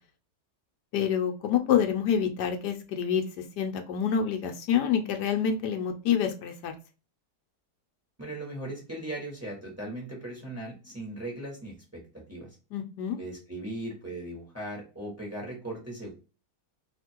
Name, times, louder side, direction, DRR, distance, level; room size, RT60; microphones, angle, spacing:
voice 1, 0.9-3.2 3.6-6.7 12.7-13.2, left 8 dB, 75° left, 5 dB, 1.2 m, -27 dB
voice 2, 8.2-12.6 13.2-16.1, right 1 dB, 10° right, -1 dB, 1.2 m, -38 dB
2.8 x 2.8 x 4.4 m, 0.33 s
omnidirectional pair, 1.8 m